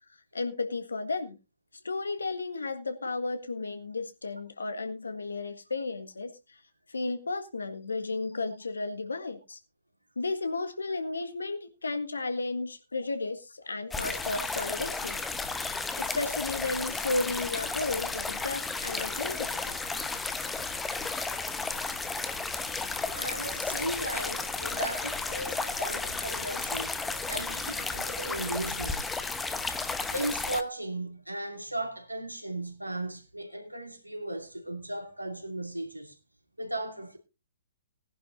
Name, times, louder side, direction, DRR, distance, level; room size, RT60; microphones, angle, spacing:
voice 1, 0.3-1.4 1.8-6.6 6.9-9.6 10.1-15.2 16.0-19.7, left 3 dB, 75° left, 1.7 m, -33 dB
sound 1, 13.9-30.6, left 3 dB, 10° left, 1.0 m, -33 dB
voice 2, 23.1-27.0 27.3-29.1 30.1-36.2 36.6-37.2, right 1 dB, 90° right, 2.6 m, -36 dB
18.5 x 11.0 x 2.6 m
figure-of-eight pair, 120°, 0 cm